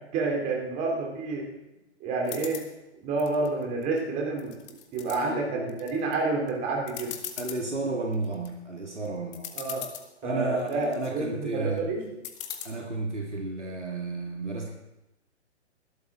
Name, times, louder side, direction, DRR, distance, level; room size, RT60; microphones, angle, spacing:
voice 1, 0.1-1.5 2.0-2.6 3.0-4.6 4.9-7.1 9.5-9.8 10.2-12.1, right 3 dB, 20° right, -1 dB, 3.0 m, -29 dB
sound 1, 2.2-2.7 3.2-4.0 4.4-5.2 5.7-6.1 6.5-6.6 6.9-7.6 8.1-8.5 9.1-9.2 9.3-10.1 10.6-11.1 12.2-12.7, left 10 dB, 25° left, 1.3 m, -39 dB
voice 2, 5.2-5.8 7.4-9.5 10.2-11.9 12.6-14.7, right 2 dB, 80° right, 0 dB, 2.0 m, -32 dB
20.0 x 12.5 x 3.7 m, 0.94 s
figure-of-eight pair, 125°, 35 cm